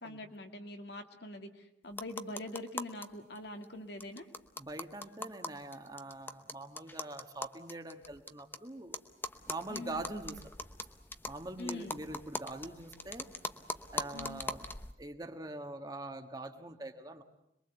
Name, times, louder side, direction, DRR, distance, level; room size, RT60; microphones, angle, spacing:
voice 1, 0.0-4.3 9.7-10.0 11.6-12.0 14.1-14.4, left 2 dB, 60° left, 5 dB, 2.3 m, -44 dB
sound 1, 1.9-3.1 3.4-3.5 3.6-3.7 4.0-8.6 8.9-14.9, left 2 dB, 10° left, 0.9 m, -41 dB
voice 2, 4.6-9.0 9.5-10.4 11.3-13.3 13.9-14.7 15.0-17.2, right 2 dB, 20° right, 6 dB, 1.6 m, -43 dB
27.0 x 22.0 x 8.1 m, 0.81 s
head